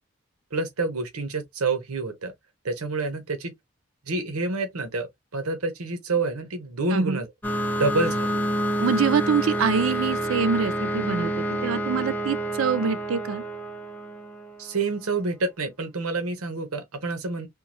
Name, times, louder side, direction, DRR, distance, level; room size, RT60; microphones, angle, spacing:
voice 1, 0.5-2.3 2.6-3.5 4.1-7.3 7.8-8.4 14.6-17.5, right 3 dB, 85° right, 0.9 m, -28 dB
sound 1, 7.4-14.8, right 1 dB, 10° left, 0.4 m, -28 dB
voice 2, 8.8-13.4, right 6 dB, 70° right, 0.5 m, -25 dB
3.7 x 2.3 x 2.9 m
head